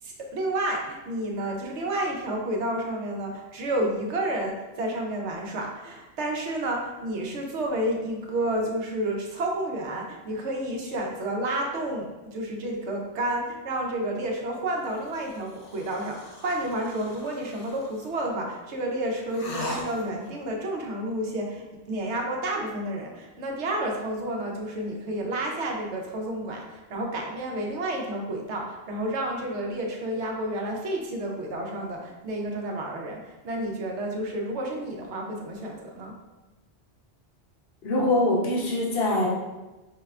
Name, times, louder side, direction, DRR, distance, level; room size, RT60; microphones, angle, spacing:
voice 1, 0.0-33.2 33.4-36.1, right 1 dB, 80° right, 0 dB, 1.1 m, -30 dB
sound 1, 14.8-18.2 19.3-20.4, left 2 dB, 85° left, 1.1 m, -40 dB
voice 2, 37.8-39.3, left 1 dB, 65° left, -4 dB, 1.2 m, -23 dB
5.5 x 3.2 x 2.4 m, 1.1 s
omnidirectional pair, 1.2 m